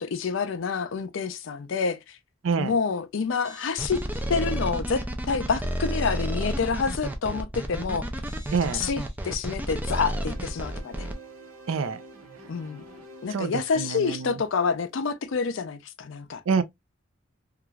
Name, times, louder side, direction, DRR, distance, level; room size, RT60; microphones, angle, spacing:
voice 1, 0.0-2.2 2.6-4.0 4.3-8.1 8.7-11.1 12.5-12.8 13.2-16.4, left 5 dB, 60° left, 0.4 m, -28 dB
sound 1, 3.2-4.3 4.7-4.8 6.0-6.1 8.2-9.6 9.9-10.0, equal, 30° right, 1.0 m, -50 dB
sound 2, 3.8-11.1, equal, 10° right, 0.3 m, -31 dB
voice 2, 8.5-8.8 11.7-12.0 13.3-14.4 16.5-16.6, right 5 dB, 70° right, 0.4 m, -26 dB
sound 3, 9.8-15.0, right 2 dB, 90° right, 1.0 m, -48 dB
3.0 x 2.4 x 2.2 m
head